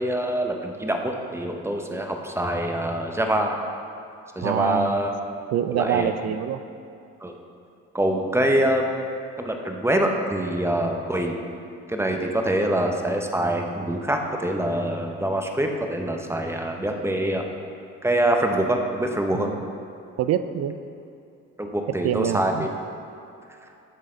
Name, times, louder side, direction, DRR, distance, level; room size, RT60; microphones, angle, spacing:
voice 1, 0.0-3.6 4.4-5.1 5.7-6.1 7.2-7.3 7.9-8.8 9.4-11.4 11.9-17.4 18.0-19.5 21.6-22.7, right 1 dB, 10° right, 3 dB, 0.8 m, -25 dB
voice 2, 4.4-4.9 5.5-6.6 19.3-19.6 20.2-20.8 22.0-22.7, right 10 dB, 60° right, 11 dB, 0.4 m, -25 dB
12.0 x 4.1 x 3.8 m, 2.6 s
supercardioid pair, 75°, 29 cm